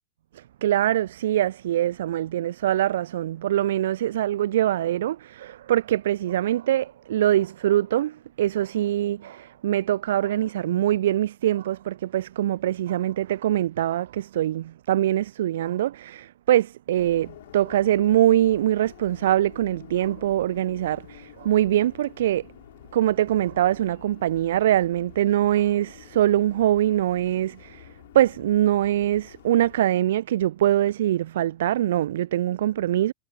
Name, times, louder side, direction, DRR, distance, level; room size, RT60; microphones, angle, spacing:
voice 1, 0.3-22.5 22.9-27.9 28.1-33.1, right 12 dB, 60° right, 0.4 m, -23 dB
sound 1, 17.0-29.8, left 14 dB, 55° left, 5.2 m, -48 dB
figure-of-eight pair, 90°, 0 cm